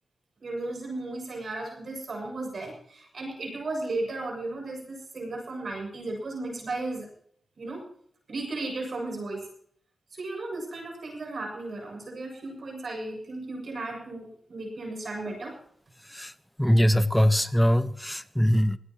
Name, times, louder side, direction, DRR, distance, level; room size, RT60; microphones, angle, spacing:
voice 1, 0.4-7.1 7.6-7.8 8.3-9.5 10.1-15.6, right 2 dB, 65° right, 0 dB, 7.8 m, -35 dB
voice 2, 16.6-18.8, equal, 5° left, 12 dB, 1.2 m, -22 dB
25.0 x 17.0 x 3.1 m, 0.64 s
cardioid pair, 40°, 0 cm